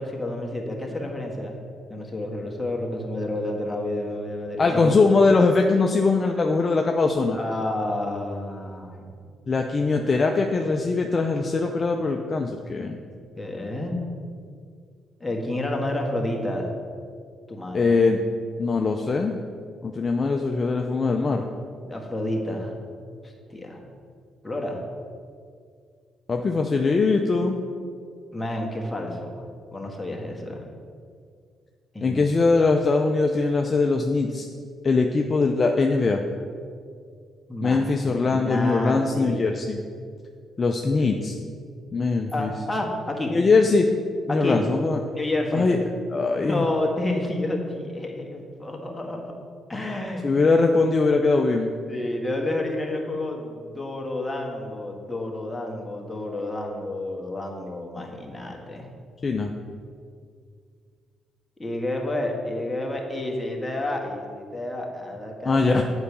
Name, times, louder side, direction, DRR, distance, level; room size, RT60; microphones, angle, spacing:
voice 1, 0.0-1.5 1.9-5.0 7.3-9.1 13.4-14.0 15.2-16.7 17.5-17.9 21.8-22.7 23.2-23.8 24.4-24.8 28.3-30.7 31.9-32.2 37.5-39.5 42.3-43.3 44.3-44.6 45.1-45.7 46.4-49.3 49.7-50.4 51.9-58.9 61.6-65.8, left 1 dB, 10° left, 0 dB, 1.6 m, -30 dB
voice 2, 4.6-7.4 9.5-13.0 17.7-18.2 18.6-19.4 19.8-21.4 26.3-27.6 32.0-34.5 34.8-36.2 37.6-39.8 40.6-41.4 41.9-42.5 43.3-43.9 44.3-45.0 45.5-45.8 46.1-46.7 50.2-51.7 59.2-59.5 65.5-65.8, left 3 dB, 35° left, 3 dB, 0.6 m, -21 dB
8.1 x 4.8 x 6.9 m, 2.2 s
cardioid pair, 90°, 0 cm